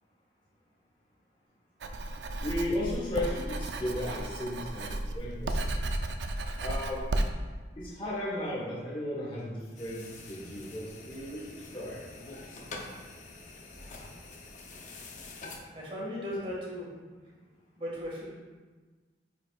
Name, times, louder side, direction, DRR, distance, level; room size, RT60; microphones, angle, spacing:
Writing, 1.8-7.3, right 1 dB, 90° right, 0.5 m, -33 dB
voice 1, 2.4-5.7 6.6-7.1 7.7-12.0, left 1 dB, 30° left, -6 dB, 1.3 m, -35 dB
sound 1, 9.8-15.6, left 3 dB, 45° left, 0.7 m, -46 dB
voice 2, 15.7-16.9 17.8-18.2, equal, 30° right, -5 dB, 1.8 m, -36 dB
8.4 x 5.1 x 2.4 m, 1.4 s
head